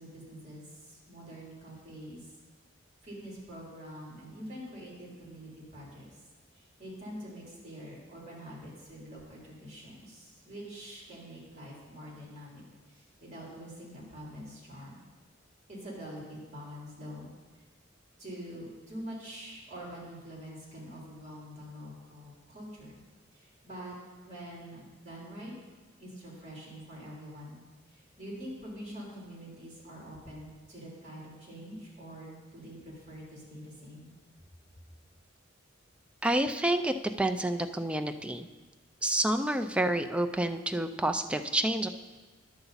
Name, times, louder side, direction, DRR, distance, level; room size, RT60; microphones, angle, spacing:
voice 1, 0.0-2.2 3.0-6.1 6.5-15.1 15.7-17.3 18.2-23.0 23.3-23.9 24.2-25.5 26.0-27.6 27.9-34.1, equal, 35° right, -5 dB, 3.3 m, -45 dB
voice 2, 36.2-38.5 39.0-41.9, right 1 dB, 5° right, 7 dB, 0.4 m, -29 dB
11.0 x 6.9 x 4.0 m, 1.3 s
head